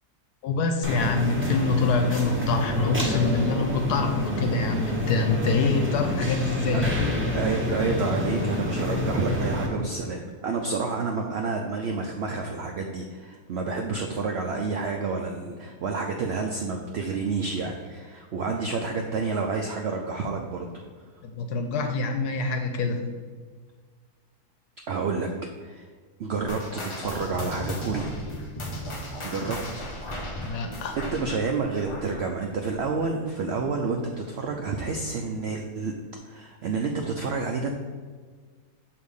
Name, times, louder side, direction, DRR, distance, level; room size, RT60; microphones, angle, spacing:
voice 1, 0.4-7.0 21.2-23.0 30.4-31.0, left 3 dB, 80° left, 5 dB, 1.1 m, -25 dB
sound 1, 0.8-9.7, left 1 dB, 10° right, 0.6 m, -28 dB
voice 2, 7.3-20.8 24.9-25.3 25.6-25.9 26.2-28.1 29.2-29.8 30.9-35.9 36.2-37.7, right 4 dB, 85° right, 2 dB, 0.5 m, -29 dB
sound 2, 26.5-33.3 33.6-33.9 34.5-34.6 35.4-35.5, left 1 dB, 50° left, 0.3 m, -36 dB
6.4 x 2.9 x 5.3 m, 1.6 s
omnidirectional pair, 1.7 m